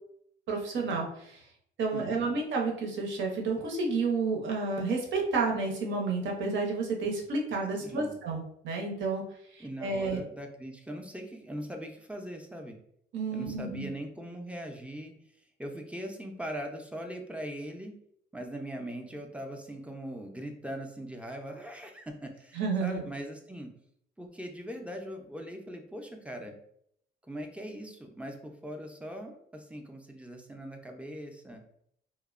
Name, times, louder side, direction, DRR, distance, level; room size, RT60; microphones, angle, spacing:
voice 1, 0.5-1.4 1.8-9.2 9.5-10.2 13.1-13.9 22.5-23.0, right 4 dB, 70° right, 0 dB, 0.7 m, -31 dB
voice 2, 1.9-2.3 7.8-8.1 9.6-12.8 13.3-15.1 15.6-17.9 18.3-23.7 24.2-26.5 27.3-31.6, equal, 5° right, 3 dB, 0.4 m, -40 dB
2.8 x 2.0 x 2.4 m, 0.70 s
cardioid pair, 90°, 20 cm